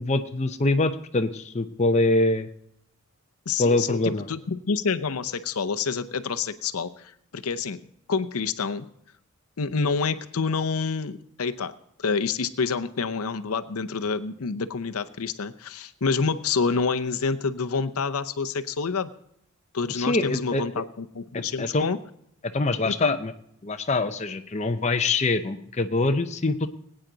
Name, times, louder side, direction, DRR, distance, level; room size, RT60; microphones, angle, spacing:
voice 1, 0.0-2.5 3.6-4.3 19.9-20.6 21.3-21.9 22.5-23.3 23.6-26.7, left 2 dB, 30° left, 7 dB, 0.6 m, -24 dB
voice 2, 3.5-7.8 8.1-8.9 9.6-11.7 12.0-19.1 19.7-22.0 22.8-23.2, left 5 dB, 85° left, 10 dB, 0.7 m, -28 dB
21.0 x 8.9 x 3.9 m, 0.73 s
head